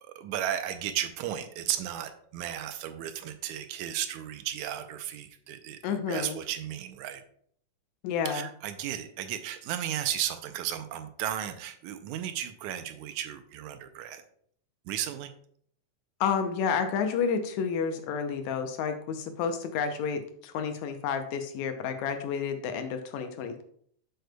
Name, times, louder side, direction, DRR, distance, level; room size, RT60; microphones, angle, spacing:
voice 1, 0.0-7.2 8.3-14.2 14.9-15.3, right 11 dB, 80° right, 9 dB, 1.9 m, -34 dB
voice 2, 5.8-6.4 8.0-8.5 16.2-23.6, left 6 dB, 80° left, 7 dB, 1.9 m, -30 dB
7.9 x 6.6 x 2.2 m, 0.62 s
omnidirectional pair, 3.5 m